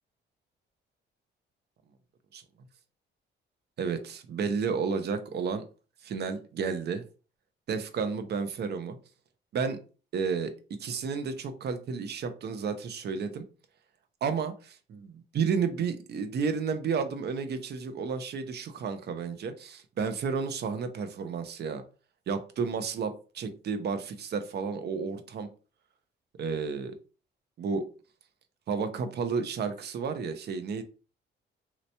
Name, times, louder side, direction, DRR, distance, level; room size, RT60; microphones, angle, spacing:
voice 1, 3.8-5.6 6.0-7.1 7.7-9.0 9.5-9.8 10.1-10.5 10.8-13.4 14.2-21.8 22.3-25.5 26.4-27.0 27.6-27.9 28.7-30.8, right 5 dB, 55° right, 9 dB, 0.6 m, -32 dB
3.2 x 2.9 x 2.7 m, 0.35 s
cardioid pair, 90°, 20 cm